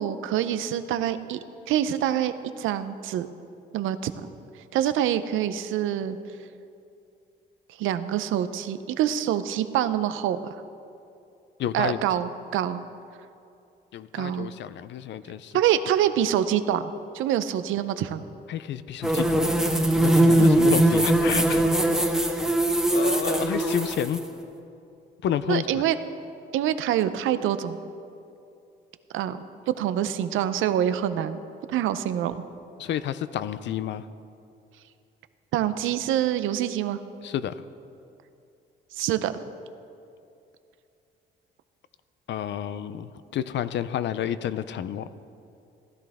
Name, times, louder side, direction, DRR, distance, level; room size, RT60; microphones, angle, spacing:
voice 1, 0.0-1.4 1.7-3.3 3.7-4.1 4.7-6.2 7.8-10.4 11.7-12.8 14.1-14.5 15.5-18.3 20.4-20.5 25.5-26.0 26.5-27.8 29.1-31.4 31.7-32.4 35.5-37.0 38.9-39.3, right 11 dB, 85° right, 12 dB, 0.6 m, -26 dB
voice 2, 11.6-12.0 13.9-15.5 18.5-19.5 20.0-21.6 22.9-24.2 25.2-25.8 32.8-34.0 37.2-37.5 42.3-45.1, left 10 dB, 65° left, 14 dB, 0.5 m, -30 dB
sound 1, 19.0-24.2, right 1 dB, ahead, 1.1 m, -21 dB
15.5 x 11.5 x 3.5 m, 2.6 s
cardioid pair, 90°, 20 cm